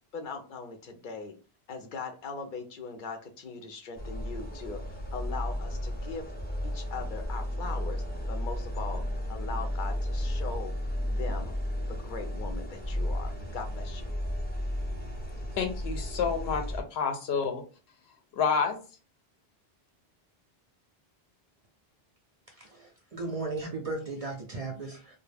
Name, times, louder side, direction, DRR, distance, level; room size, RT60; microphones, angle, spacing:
voice 1, 0.1-1.3 1.7-6.3 6.6-9.0 9.3-10.7 11.1-11.5 11.9-14.1, left 4 dB, 60° left, 5 dB, 0.6 m, -40 dB
sound 1, 4.0-16.8, left 1 dB, 15° left, 0.4 m, -33 dB
voice 2, 15.6-17.6 18.3-18.8, left 6 dB, 85° left, 6 dB, 0.9 m, -29 dB
voice 3, 22.5-25.2, right 3 dB, 50° right, 2 dB, 0.4 m, -36 dB
2.2 x 2.0 x 3.2 m, 0.36 s
omnidirectional pair, 1.0 m